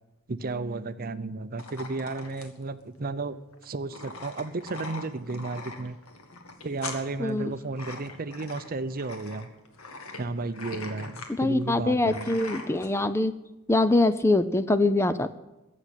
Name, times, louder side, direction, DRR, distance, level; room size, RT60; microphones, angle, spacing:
voice 1, 0.3-3.4 3.6-6.0 6.6-9.5 10.2-12.4, right 3 dB, 40° right, 13 dB, 0.6 m, -33 dB
sound 1, 1.6-12.9, left 3 dB, 70° left, 2.0 m, -42 dB
voice 2, 7.2-7.5 11.4-13.3 13.7-15.4, left 2 dB, 10° left, 12 dB, 0.5 m, -23 dB
15.0 x 7.4 x 10.0 m, 1.0 s
head